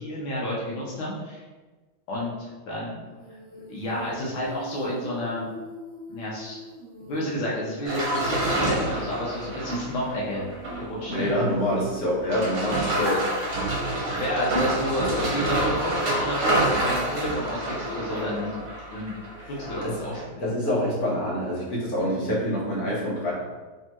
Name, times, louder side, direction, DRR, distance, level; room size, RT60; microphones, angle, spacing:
voice 1, 0.0-1.4 2.1-3.0 3.7-5.5 6.1-6.6 7.1-10.5 10.8-11.3 12.7-12.9 14.2-18.6 18.9-19.2 19.6-20.4, equal, 85° left, -5 dB, 1.6 m, -30 dB
Female singing, 3.2-12.1 14.3-18.5, right 1 dB, 75° right, 0.6 m, -43 dB
sound 1, 7.8-11.5 11.8-11.9 12.2-19.9 20.1-20.2, right 1 dB, 60° right, 1.3 m, -28 dB
voice 2, 11.1-13.2 19.4-19.5 19.8-20.0 20.4-23.3, equal, 55° left, -6 dB, 1.4 m, -26 dB
3.4 x 3.4 x 2.9 m, 1.3 s
omnidirectional pair, 2.2 m